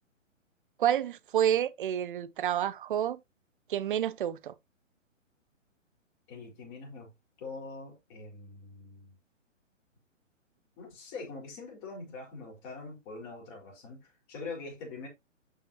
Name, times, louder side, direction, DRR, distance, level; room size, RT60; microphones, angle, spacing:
voice 1, 0.8-3.2 3.7-4.5, right 10 dB, 40° right, 0.7 m, -29 dB
voice 2, 6.3-7.1 7.4-9.1 10.8-15.1, left 3 dB, 30° left, 4.5 m, -43 dB
11.5 x 5.0 x 2.8 m
figure-of-eight pair, 130°, 39 cm